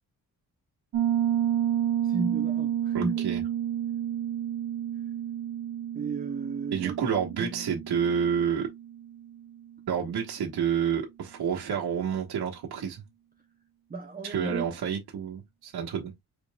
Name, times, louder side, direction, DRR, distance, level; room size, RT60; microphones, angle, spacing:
Piano, 0.9-9.4, right 10 dB, 55° right, 0.7 m, -30 dB
voice 1, 2.0-3.1 5.9-6.9 7.4-7.6 13.9-14.7, right 3 dB, 25° right, 0.8 m, -33 dB
voice 2, 2.9-3.4 6.7-8.7 9.9-13.0 14.2-16.1, right 7 dB, 80° right, 1.3 m, -29 dB
5.3 x 4.0 x 2.2 m
wide cardioid pair, 120°, 38 cm